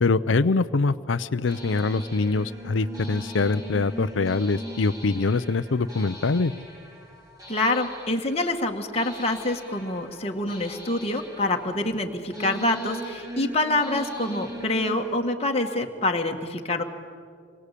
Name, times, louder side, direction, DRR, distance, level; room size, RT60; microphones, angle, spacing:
voice 1, 0.0-6.5, left 3 dB, 85° left, 12 dB, 0.6 m, -24 dB
sound 1, 1.5-15.1, right 1 dB, 20° right, 4.5 m, -40 dB
voice 2, 7.5-16.8, left 2 dB, 35° left, 2 dB, 1.8 m, -26 dB
27.0 x 22.5 x 8.4 m, 2.2 s
head